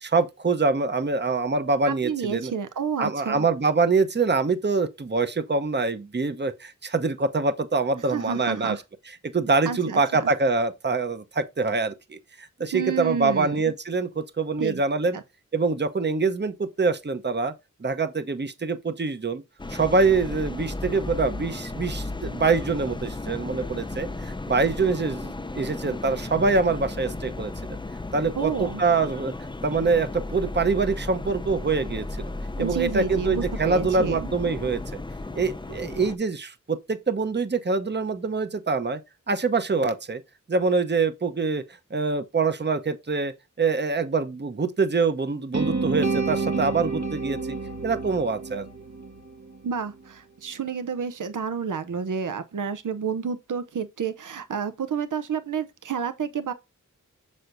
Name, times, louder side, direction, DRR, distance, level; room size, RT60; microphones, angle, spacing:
voice 1, 0.0-2.5 3.0-8.8 9.3-15.2 15.5-17.5 17.8-19.4 19.7-27.8 28.1-29.3 29.6-32.3 32.6-35.0 35.4-39.0 39.3-40.2 40.5-41.6 41.9-43.3 43.6-47.6 47.8-48.7, right 4 dB, 35° right, 0.8 m, -25 dB
voice 2, 1.9-3.5 8.1-8.8 9.6-10.2 12.7-13.6 14.6-14.8 15.1-15.2 28.4-28.8 32.6-34.3 49.6-56.5, right 6 dB, 75° right, 0.6 m, -30 dB
sound 1, 19.6-36.2, left 2 dB, 15° left, 0.5 m, -34 dB
sound 2, 45.5-49.6, right 4 dB, 60° right, 1.2 m, -29 dB
6.7 x 6.3 x 2.5 m
wide cardioid pair, 65°, 31 cm